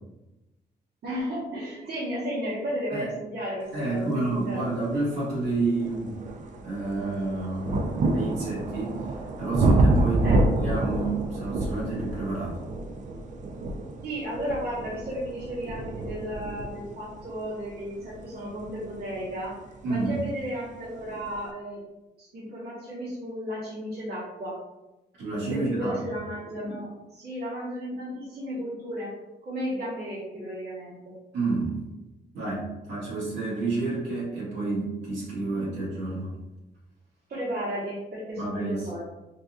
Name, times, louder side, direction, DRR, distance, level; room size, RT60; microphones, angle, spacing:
voice 1, 1.0-4.7 10.2-10.4 14.0-19.5 19.9-21.8 22.2-24.6 25.5-29.1 29.4-31.1 37.3-39.0, equal, 65° right, -9 dB, 1.2 m, -34 dB
voice 2, 3.7-6.2 6.6-9.1 9.4-12.6 19.8-20.1 25.2-25.9 31.3-31.8 32.3-36.3 38.4-38.9, right 3 dB, 90° right, -8 dB, 1.5 m, -30 dB
sound 1, 4.8-4.9 5.4-20.1 21.0-21.1, right 2 dB, 45° right, 0.4 m, -28 dB
4.1 x 2.4 x 2.3 m, 1.0 s
cardioid pair, 115°, 18 cm